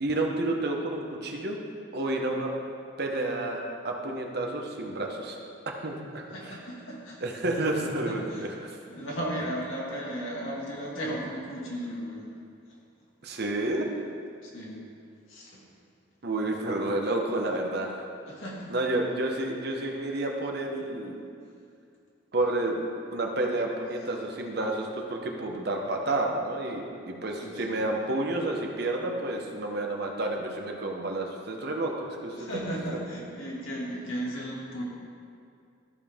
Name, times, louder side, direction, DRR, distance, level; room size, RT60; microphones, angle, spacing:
voice 1, 0.0-1.6 1.9-2.5 3.0-5.4 5.7-6.2 7.2-8.8 13.2-13.9 16.2-18.1 18.7-21.2 22.3-22.8 23.1-32.4 32.7-32.8, right 2 dB, 50° right, 1 dB, 0.9 m, -30 dB
voice 2, 6.3-7.2 8.1-8.6 8.9-12.3 12.7-12.8 14.4-14.9 15.3-15.7 18.3-18.7 27.4-27.8 32.3-34.8, equal, 80° left, -4 dB, 2.0 m, -35 dB
13.5 x 5.3 x 3.6 m, 2.4 s
head